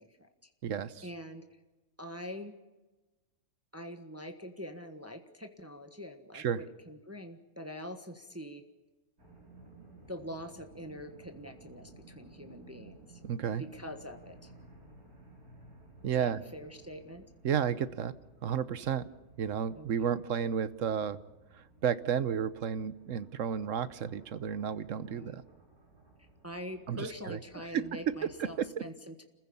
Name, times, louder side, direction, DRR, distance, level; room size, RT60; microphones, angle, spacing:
voice 1, 0.0-0.5 1.0-1.5 2.0-2.5 3.7-8.6 10.1-13.1 13.6-14.5 16.0-17.3 19.7-20.1 25.0-25.4 26.2-29.2, equal, 10° right, 6 dB, 1.3 m, -44 dB
voice 2, 0.6-1.1 6.3-6.6 13.2-13.6 16.0-16.4 17.4-18.1 18.4-19.0 19.4-21.2 21.5-25.4 26.9-28.1 28.4-28.8, right 8 dB, 65° right, 15 dB, 1.2 m, -32 dB
sound 1, 9.2-28.7, right 2 dB, 90° right, 5.3 m, -57 dB
27.5 x 15.5 x 7.0 m, 1.2 s
omnidirectional pair, 1.5 m